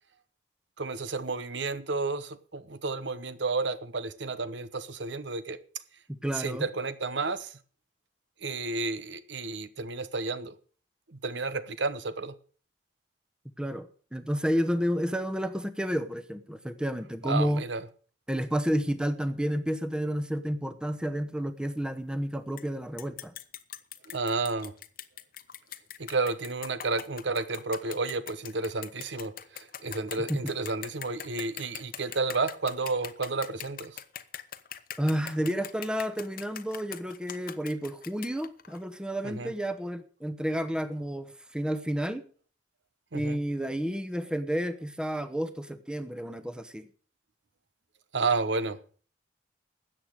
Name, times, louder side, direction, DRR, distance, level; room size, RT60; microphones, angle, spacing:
voice 1, 0.8-5.6 6.3-7.5 8.4-10.5 11.1-12.3 17.2-17.9 24.1-24.7 26.0-34.0 39.2-39.5 43.1-43.4 48.1-48.8, right 3 dB, 75° right, 1.0 m, -31 dB
voice 2, 6.1-6.7 13.6-17.6 18.3-23.3 30.3-30.4 35.0-42.2 43.1-46.9, equal, 5° right, 0.9 m, -31 dB
sound 1, 22.6-22.7 23.0-38.8, left 10 dB, 50° left, 0.9 m, -42 dB
13.5 x 8.8 x 6.5 m
head